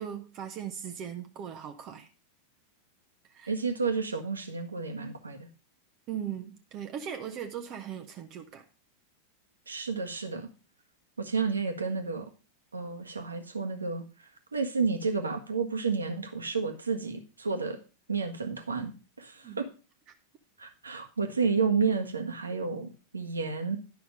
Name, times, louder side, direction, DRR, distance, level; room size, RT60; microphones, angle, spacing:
voice 1, 0.0-2.1 3.3-3.5 6.1-8.6 19.4-19.6, right 9 dB, 35° right, 0.9 m, -39 dB
voice 2, 3.5-5.5 9.7-10.5 11.2-12.3 12.7-17.8 18.1-19.7 20.6-23.8, right 4 dB, 75° right, 1.5 m, -31 dB
11.0 x 5.9 x 5.1 m
figure-of-eight pair, 90°, 0 cm